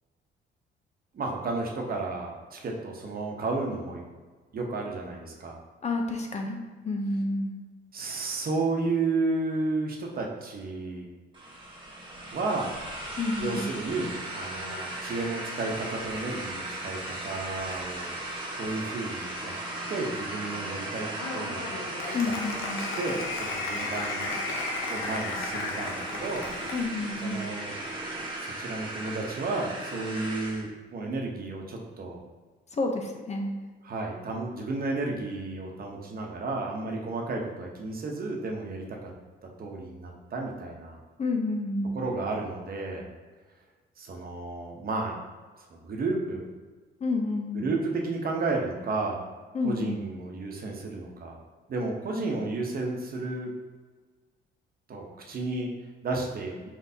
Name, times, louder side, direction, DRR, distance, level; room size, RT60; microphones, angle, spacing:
voice 1, 1.1-4.0 4.5-5.6 7.9-11.0 12.3-12.7 13.4-18.1 18.5-19.5 19.9-22.2 22.8-24.3 24.9-26.5 27.2-27.7 28.4-32.2 33.8-39.1 39.4-41.0 41.9-43.1 44.0-45.2 45.7-46.4 47.5-49.2 49.6-51.4 51.7-53.5 54.9-55.7 56.0-56.6, right 3 dB, 50° right, 0 dB, 0.9 m, -32 dB
voice 2, 5.8-6.6 6.8-7.6 13.2-13.7 22.1-22.9 26.7-27.4 32.7-33.6 41.2-42.0 47.0-47.7 49.5-50.0, left 3 dB, 35° left, 3 dB, 0.6 m, -29 dB
sound 1, 11.3-30.7, right 1 dB, 25° right, 1.2 m, -37 dB
Applause, 21.1-26.9, left 3 dB, 85° left, 0.7 m, -35 dB
4.5 x 3.9 x 2.8 m, 1.4 s
cardioid pair, 90°, 20 cm